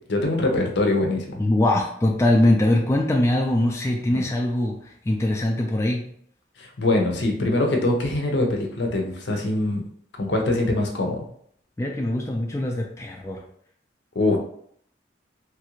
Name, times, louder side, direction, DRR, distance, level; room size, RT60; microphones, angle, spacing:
voice 1, 0.1-1.4 4.1-4.2 6.6-9.8 10.2-11.2 14.2-14.4, left 2 dB, 70° left, 2 dB, 0.6 m, -23 dB
voice 2, 1.4-6.1 11.8-13.4, left 1 dB, 15° left, 0 dB, 0.3 m, -22 dB
3.1 x 2.4 x 3.0 m, 0.64 s
head